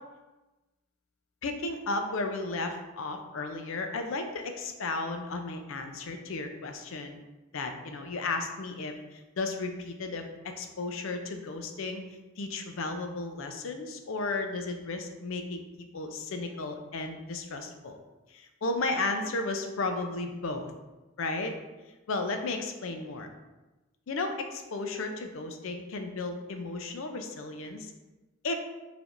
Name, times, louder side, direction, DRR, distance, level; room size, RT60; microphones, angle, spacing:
voice 1, 1.4-7.2 7.5-12.0 12.4-18.0 18.3-20.7 21.2-21.6 22.1-23.3 24.1-27.9 28.4-28.5, left 3 dB, 70° left, 5 dB, 0.5 m, -34 dB
4.9 x 3.4 x 2.5 m, 1.1 s
head